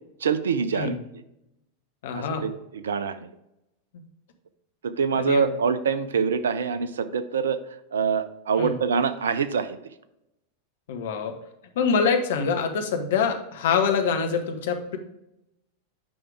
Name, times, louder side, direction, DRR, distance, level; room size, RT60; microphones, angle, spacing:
voice 1, 0.2-1.0 2.1-3.2 4.8-7.6 7.9-9.8, right 6 dB, 65° right, 12 dB, 0.5 m, -25 dB
voice 2, 2.0-2.4 5.2-5.5 8.6-8.7 10.9-11.3 11.7-15.0, left 6 dB, 55° left, 5 dB, 1.1 m, -25 dB
8.6 x 5.6 x 3.4 m, 0.86 s
figure-of-eight pair, 90°, 0 cm